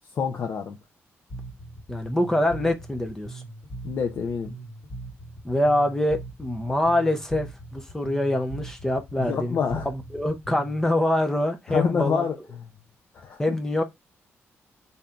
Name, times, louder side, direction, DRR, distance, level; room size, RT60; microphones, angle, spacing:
voice 1, 0.2-0.8 3.8-4.6 9.2-9.9 11.7-12.4 13.1-13.6, left 6 dB, 50° left, 0.7 m, -27 dB
Bass guitar, 1.3-10.9, right 2 dB, 35° left, 1.7 m, -40 dB
voice 2, 1.9-3.4 5.4-9.6 9.9-12.3 13.4-13.8, left 1 dB, 10° left, 0.6 m, -25 dB
3.7 x 2.8 x 4.4 m
wide cardioid pair, 160°, 5 cm